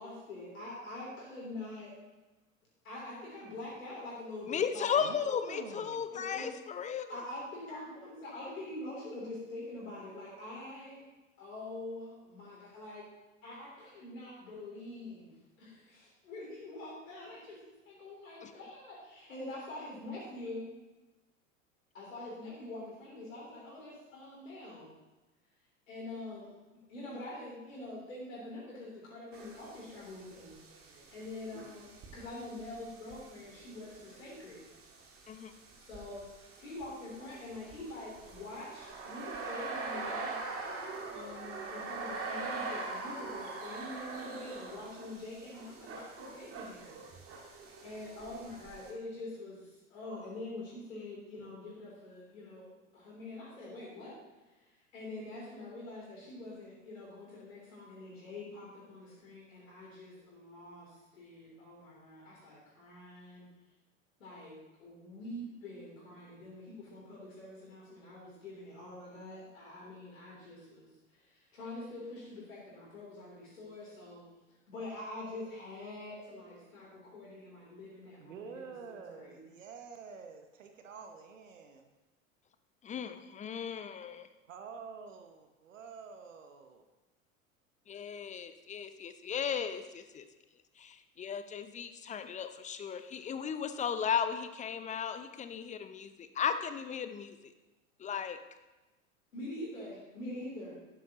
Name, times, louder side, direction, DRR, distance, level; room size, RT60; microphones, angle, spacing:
voice 1, 0.0-1.9 2.8-5.0 6.1-6.5 7.1-11.0 11.4-13.1 13.4-17.6 17.8-20.7 21.9-24.9 25.9-26.6 26.9-30.5 30.9-34.6 35.8-40.4 41.1-46.9 47.8-54.1 54.9-63.5 64.2-74.2 74.7-79.4 99.3-100.7, left 2 dB, 70° left, -5 dB, 3.4 m, -45 dB
voice 2, 4.5-7.1 18.4-18.5 35.3-35.5 82.8-84.3 87.9-90.3 90.8-97.5 98.0-98.4, left 7 dB, 20° left, 10 dB, 0.6 m, -35 dB
voice 3, 5.0-6.1 78.1-81.9 84.5-86.8, right 5 dB, 70° right, 6 dB, 1.0 m, -48 dB
sound 1, 29.3-48.9, right 3 dB, 35° right, 1.9 m, -44 dB
12.5 x 9.9 x 3.0 m, 1.1 s
figure-of-eight pair, 80°, 40 cm